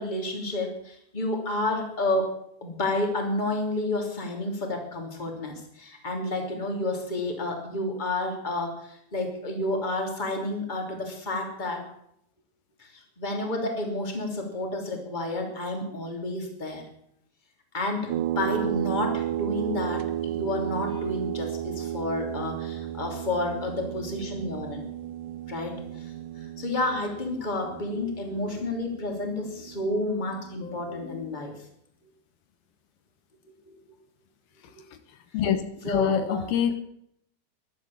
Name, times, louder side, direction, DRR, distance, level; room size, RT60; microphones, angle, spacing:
voice 1, 0.0-11.8 12.8-16.8 17.7-24.9 25.5-31.5 33.7-33.8 35.8-36.5, left 2 dB, 15° left, 3 dB, 2.7 m, -30 dB
sound 1, 18.1-31.2, right 12 dB, 75° right, 2.2 m, -33 dB
voice 2, 30.6-31.5 35.3-36.8, left 9 dB, 80° left, 9 dB, 2.7 m, -28 dB
14.0 x 11.5 x 7.2 m, 0.72 s
omnidirectional pair, 4.4 m